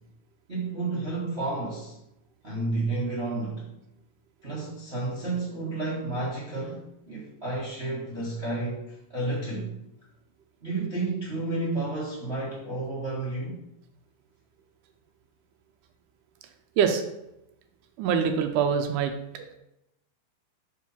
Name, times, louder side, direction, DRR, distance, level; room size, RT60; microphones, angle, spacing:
voice 1, 0.5-1.9 2.4-3.7 4.4-9.7 10.6-13.6, right 2 dB, 45° right, -7 dB, 0.8 m, -31 dB
voice 2, 18.0-19.4, right 7 dB, 85° right, 5 dB, 1.9 m, -25 dB
5.1 x 4.7 x 5.6 m, 0.87 s
omnidirectional pair, 4.2 m